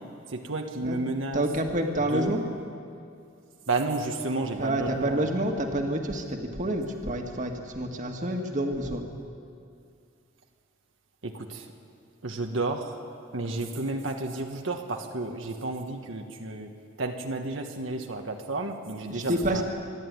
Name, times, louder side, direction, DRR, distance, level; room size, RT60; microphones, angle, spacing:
voice 1, 0.0-1.5 2.1-2.3 3.7-5.3 11.2-11.7 12.2-13.0 13.3-16.7 17.0-19.6, right 2 dB, 80° right, 3 dB, 1.3 m, -31 dB
voice 2, 1.3-2.4 4.6-9.0 19.1-19.6, right 1 dB, 40° right, 3 dB, 1.8 m, -28 dB
26.0 x 11.0 x 9.5 m, 2.4 s
head